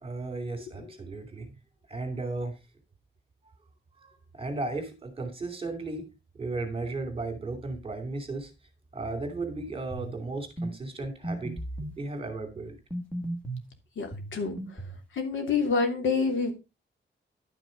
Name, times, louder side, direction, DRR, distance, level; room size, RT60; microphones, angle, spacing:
voice 1, 0.0-1.5 1.9-2.6 4.0-6.0 6.4-8.5 8.9-11.6 12.0-12.8, right 3 dB, 30° right, 8 dB, 2.7 m, -35 dB
sound 1, 9.9-10.2 10.6-10.7 11.2-12.0 12.9-13.7 14.1-15.1, right 1 dB, 5° left, 1.5 m, -35 dB
voice 2, 14.0-14.8 15.1-16.5, left 4 dB, 85° left, 4 dB, 3.1 m, -28 dB
11.5 x 6.0 x 5.2 m, 0.26 s
wide cardioid pair, 180°, 20 cm